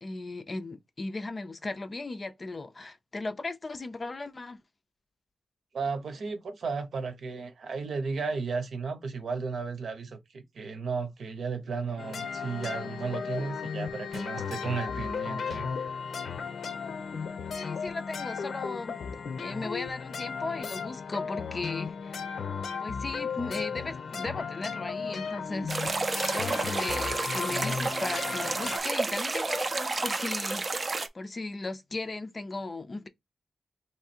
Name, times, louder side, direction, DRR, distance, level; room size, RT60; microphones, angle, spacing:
voice 1, 0.0-4.6 17.5-19.0 19.4-22.2 22.8-26.0 26.3-30.6 31.1-33.1, left 3 dB, 30° left, 0.5 m, -37 dB
voice 2, 5.7-15.7 16.7-16.8, right 4 dB, 70° right, 0.9 m, -34 dB
sound 1, 12.0-28.8, left 6 dB, 80° left, 0.7 m, -35 dB
sound 2, 25.7-31.1, right 3 dB, 30° right, 0.5 m, -30 dB
3.5 x 3.1 x 4.2 m
wide cardioid pair, 180°, 0 cm